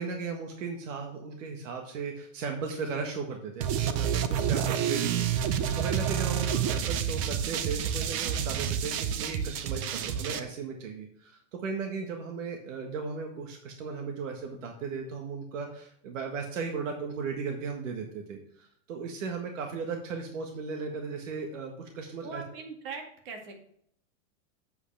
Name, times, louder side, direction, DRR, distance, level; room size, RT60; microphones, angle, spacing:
voice 1, 0.0-22.4, right 5 dB, 75° right, 3 dB, 1.7 m, -36 dB
sound 1, 3.6-10.4, right 9 dB, 30° right, 0.4 m, -29 dB
voice 2, 22.2-23.5, right 5 dB, 50° right, 2 dB, 2.3 m, -40 dB
8.0 x 7.8 x 3.4 m, 0.68 s
supercardioid pair, 165°, 38 cm